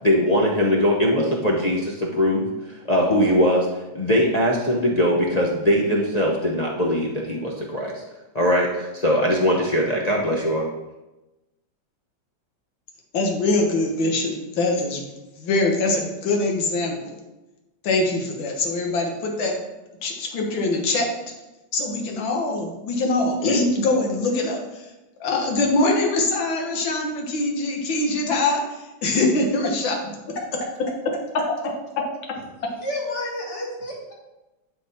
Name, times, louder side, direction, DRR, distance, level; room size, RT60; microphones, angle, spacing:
voice 1, 0.0-3.7 3.9-8.0 8.3-10.7, equal, 60° left, -3 dB, 0.4 m, -21 dB
voice 2, 13.1-15.1 15.4-17.2 17.8-19.5 20.0-21.1 21.7-24.8 25.2-29.9 32.0-32.1, left 2 dB, 75° left, 1 dB, 2.0 m, -23 dB
voice 3, 32.8-34.1, left 1 dB, 35° left, -3 dB, 1.9 m, -30 dB
10.5 x 3.9 x 4.2 m, 1.0 s
omnidirectional pair, 2.1 m